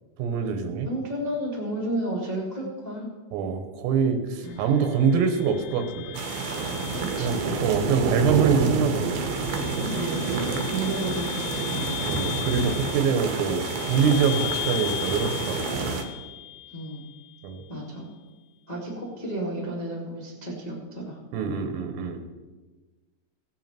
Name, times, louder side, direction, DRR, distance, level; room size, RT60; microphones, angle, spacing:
voice 1, 0.2-0.9 3.3-6.2 7.2-9.2 12.1-13.6 13.9-15.9 17.4-17.6 21.3-22.2, right 6 dB, 85° right, 6 dB, 3.8 m, -24 dB
voice 2, 0.8-3.1 4.4-4.8 7.1-7.6 9.9-10.3 10.7-11.8 16.7-17.0 17.7-18.1 18.7-21.2, right 1 dB, 25° left, -4 dB, 0.8 m, -32 dB
sound 1, 4.4-17.4, left 16 dB, 80° left, 2.4 m, -37 dB
sound 2, 6.1-16.0, right 4 dB, 70° right, 2.5 m, -29 dB
17.0 x 9.4 x 4.4 m, 1.2 s
omnidirectional pair, 5.8 m